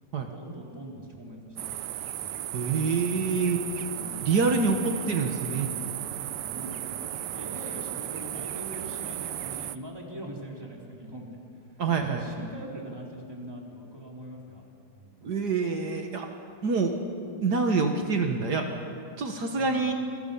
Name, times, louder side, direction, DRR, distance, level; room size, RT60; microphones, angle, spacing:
voice 1, 0.2-1.8 2.2-2.6 3.9-4.3 6.4-6.8 7.1-11.4 11.9-15.1 19.5-19.9, right 1 dB, 15° right, -1 dB, 3.8 m, -42 dB
sound 1, 1.6-9.8, right 11 dB, 90° right, 1.4 m, -35 dB
voice 2, 2.5-3.6 4.2-5.7 11.8-12.3 15.2-16.3 16.6-16.9 17.4-18.8 19.2-19.9, right 4 dB, 70° right, 4 dB, 2.0 m, -26 dB
28.5 x 21.5 x 7.0 m, 2.4 s
omnidirectional pair, 1.8 m